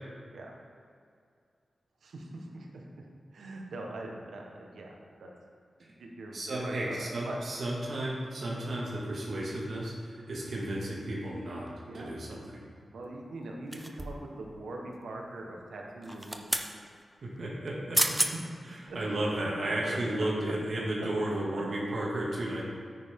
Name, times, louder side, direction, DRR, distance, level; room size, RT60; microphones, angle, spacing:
voice 1, 2.0-2.8 3.3-4.9 5.2-5.3 5.8-7.4 11.9-12.2 12.9-16.6 18.1-18.5 19.9-20.0, right 2 dB, 85° right, 0 dB, 1.4 m, -42 dB
voice 2, 6.3-11.7 11.9-12.6 17.2-18.0 18.6-22.6, right 1 dB, 70° right, -5 dB, 2.4 m, -33 dB
sound 1, 13.7-14.3 16.0-16.7 17.7-17.8 17.9-18.3 18.9-19.0, right 1 dB, 15° right, 0.8 m, -30 dB
9.5 x 9.3 x 3.8 m, 2.3 s
cardioid pair, 55°, 0 cm